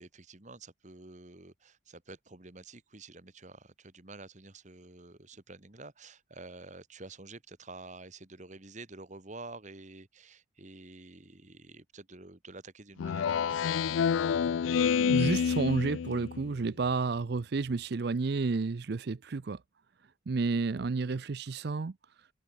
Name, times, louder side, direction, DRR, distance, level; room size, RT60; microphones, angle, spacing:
voice 1, 0.0-13.9, right 3 dB, 35° right, 1.6 m, -49 dB
Speech synthesizer, 13.0-16.5, left 7 dB, 80° left, 0.4 m, -28 dB
voice 2, 15.1-19.6 20.3-21.9, right 4 dB, 55° right, 0.5 m, -31 dB
head